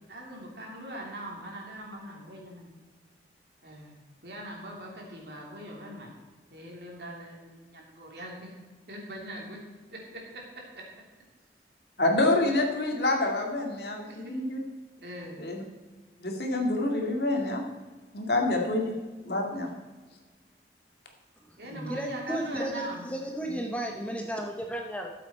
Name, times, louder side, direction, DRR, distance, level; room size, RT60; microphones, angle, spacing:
voice 1, 0.0-2.7 3.6-4.0 4.2-6.1 6.5-8.5 8.9-9.6 9.9-10.8 13.9-14.3 15.0-15.4 21.6-23.0, right 1 dB, 65° right, -1 dB, 3.1 m, -41 dB
voice 2, 12.0-14.6 15.4-15.6 16.2-17.6 18.1-18.9 19.2-19.7 21.7-21.9, left 2 dB, 65° left, 1 dB, 2.1 m, -27 dB
voice 3, 21.9-25.1, right 1 dB, 10° left, 2 dB, 0.8 m, -33 dB
13.0 x 7.7 x 4.4 m, 1.3 s
head